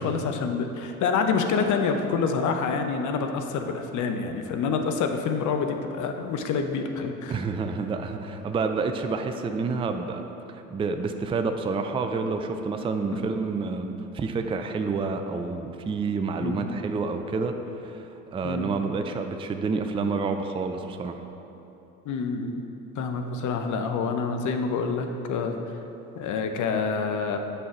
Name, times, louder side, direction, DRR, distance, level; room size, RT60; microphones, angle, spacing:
voice 1, 0.0-7.4 13.1-13.2 16.4-16.7 18.4-18.7 22.0-22.6 22.9-25.6 26.1-27.4, left 5 dB, 45° left, 6 dB, 0.9 m, -27 dB
voice 2, 7.3-10.2 10.5-21.2, right 4 dB, 15° right, 6 dB, 0.4 m, -29 dB
8.5 x 5.6 x 4.6 m, 2.9 s
hypercardioid pair, 70°, 42 cm